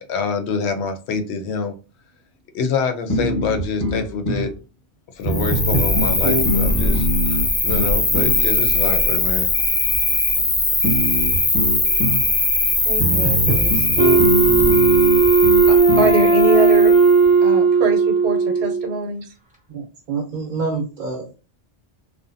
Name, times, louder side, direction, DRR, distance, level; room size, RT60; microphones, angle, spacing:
voice 1, 0.0-1.7 2.5-4.5 5.1-9.5, left 5 dB, 90° left, 7 dB, 0.9 m, -26 dB
sound 1, 3.1-4.5 5.2-8.4 10.8-12.3 13.0-16.2, equal, 20° left, 0.9 m, -23 dB
Cricket, 5.3-17.2, left 2 dB, 40° left, 0.5 m, -20 dB
voice 2, 12.8-13.9 15.7-16.9 17.4-19.3, right 3 dB, 80° right, 3 dB, 1.0 m, -24 dB
Wind instrument woodwind instrument, 14.0-19.0, right 4 dB, 10° right, 0.4 m, -15 dB
voice 3, 19.7-21.4, right 4 dB, 55° right, 1 dB, 0.7 m, -27 dB
2.5 x 2.1 x 2.5 m, 0.32 s
omnidirectional pair, 1.1 m